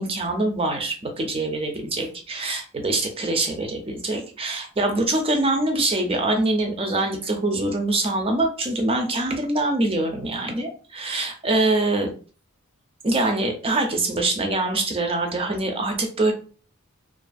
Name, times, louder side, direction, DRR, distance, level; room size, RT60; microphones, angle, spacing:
voice 1, 0.0-12.1 13.0-16.3, right 2 dB, 25° right, 3 dB, 0.5 m, -24 dB
2.5 x 2.4 x 2.3 m, 0.39 s
head